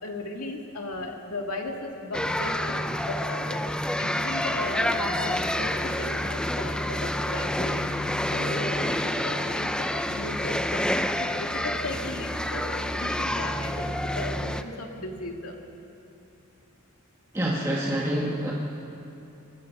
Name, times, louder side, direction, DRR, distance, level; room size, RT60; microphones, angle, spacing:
voice 1, 0.0-3.6 4.0-10.9 11.2-15.6, left 2 dB, 70° left, 2 dB, 2.3 m, -36 dB
sound 1, 2.1-14.6, left 1 dB, 5° left, 0.6 m, -28 dB
voice 2, 17.3-18.5, right 1 dB, 15° right, -3 dB, 1.5 m, -27 dB
25.0 x 19.5 x 5.6 m, 2.9 s
head